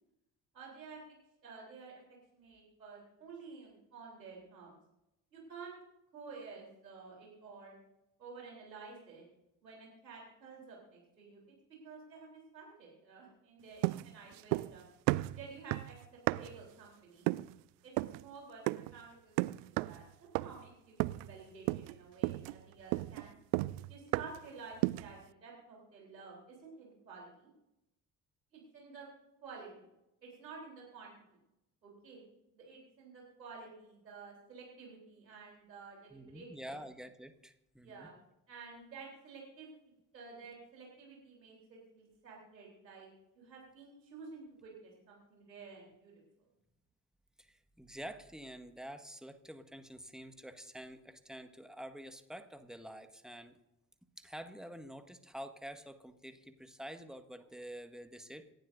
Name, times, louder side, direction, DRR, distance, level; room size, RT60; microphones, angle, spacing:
voice 1, 0.5-1.0 1.4-4.8 5.3-5.7 6.1-7.8 8.2-9.2 9.6-11.4 11.8-14.9 15.3-17.3 17.8-17.9 18.2-23.3 23.9-27.5 28.5-29.1 29.4-29.9 30.2-31.1 31.8-32.2 32.5-36.8 37.8-38.2 38.5-39.7 40.1-43.1 43.4-46.1, right 4 dB, 90° right, -2 dB, 3.8 m, -51 dB
sound 1, 13.8-14.8 15.1-16.7 17.3-17.6 18.0-18.2 18.7-19.0 19.4-20.0 20.3-20.7 21.0-21.4 21.7-22.0 22.2-24.5 24.8-25.2, right 21 dB, 70° right, 0.5 m, -34 dB
voice 2, 36.1-38.1 47.4-53.6 54.2-58.5, equal, ahead, 8 dB, 1.6 m, -48 dB
27.0 x 12.0 x 2.6 m, 0.89 s
figure-of-eight pair, 40°, 49 cm